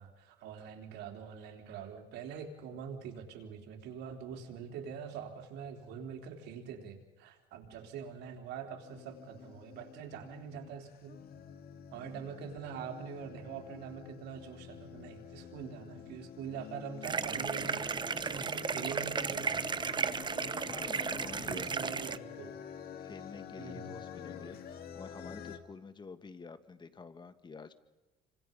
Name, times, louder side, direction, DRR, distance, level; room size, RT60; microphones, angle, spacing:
voice 1, 0.0-11.2 11.9-17.9 18.2-19.6 21.2-22.6 23.6-24.3, right 7 dB, 85° right, 3 dB, 3.9 m, -44 dB
sound 1, 8.8-25.6, left 8 dB, 65° left, 2.3 m, -48 dB
sound 2, 17.0-22.2, right 5 dB, 25° right, 0.8 m, -34 dB
voice 2, 20.6-21.8 23.0-27.7, left 4 dB, 25° left, 10 dB, 1.7 m, -49 dB
28.5 x 26.0 x 5.5 m, 1.1 s
cardioid pair, 110°, 17 cm